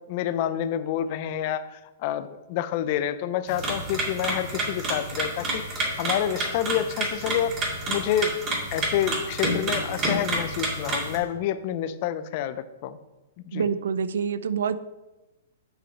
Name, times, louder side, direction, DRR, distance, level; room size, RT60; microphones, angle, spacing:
voice 1, 0.1-5.6 6.0-7.6 7.9-8.3 8.7-13.0 13.5-13.7, left 10 dB, 40° left, 13 dB, 0.6 m, -28 dB
sound 1, 3.5-11.2, right 2 dB, 25° right, 2.4 m, -29 dB
voice 2, 13.5-14.8, right 6 dB, 80° right, 15 dB, 0.5 m, -26 dB
7.3 x 6.0 x 5.5 m, 1.1 s
hypercardioid pair, 150°, 0 cm